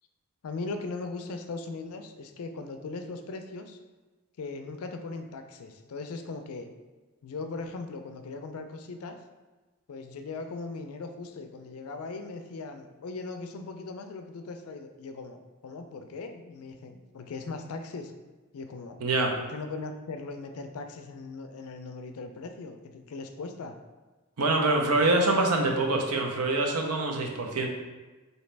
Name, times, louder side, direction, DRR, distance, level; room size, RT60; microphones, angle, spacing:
voice 1, 0.4-3.8 4.4-6.7 7.2-9.2 9.9-15.4 15.6-18.1 18.5-19.0 19.5-23.8, left 3 dB, 70° left, 6 dB, 0.4 m, -39 dB
voice 2, 19.0-19.3 24.4-27.7, right 2 dB, 80° right, 2 dB, 0.6 m, -25 dB
4.0 x 2.8 x 3.3 m, 1.2 s
head